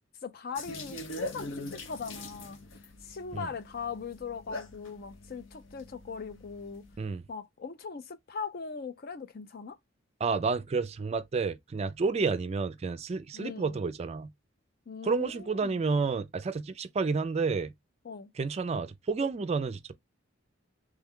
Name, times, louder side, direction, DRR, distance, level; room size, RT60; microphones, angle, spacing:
voice 1, 0.2-2.6 3.0-6.8 7.3-9.8 13.3-13.8 14.9-15.8 18.0-18.3, left 5 dB, 50° left, 0.5 m, -40 dB
sound 1, 0.5-6.9, left 1 dB, 80° left, 0.8 m, -43 dB
voice 2, 10.2-14.3 15.0-17.7 18.4-19.8, right 4 dB, 35° right, 0.4 m, -30 dB
3.2 x 2.2 x 3.6 m
head